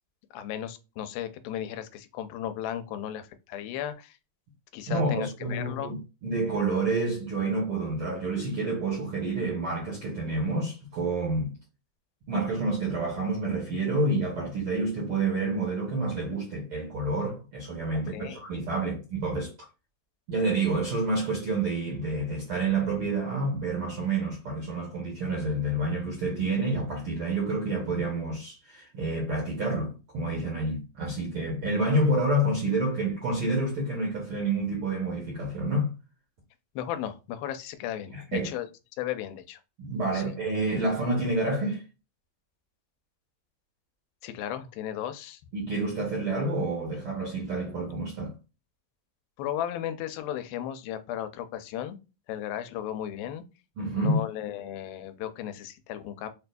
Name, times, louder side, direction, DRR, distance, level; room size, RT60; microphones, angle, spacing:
voice 1, 0.3-4.2 4.7-6.0 18.1-18.4 36.8-38.7 39.0-39.6 40.1-40.2 44.2-45.4 49.4-52.0 52.3-53.4 54.0-56.3, left 11 dB, 90° left, 2.4 m, -35 dB
voice 2, 4.9-6.0 6.2-11.5 12.3-19.5 20.3-35.9 38.1-38.5 39.8-41.8 45.5-48.3 53.8-54.2, right 2 dB, 65° right, 1.3 m, -28 dB
6.3 x 2.3 x 2.5 m
omnidirectional pair, 4.2 m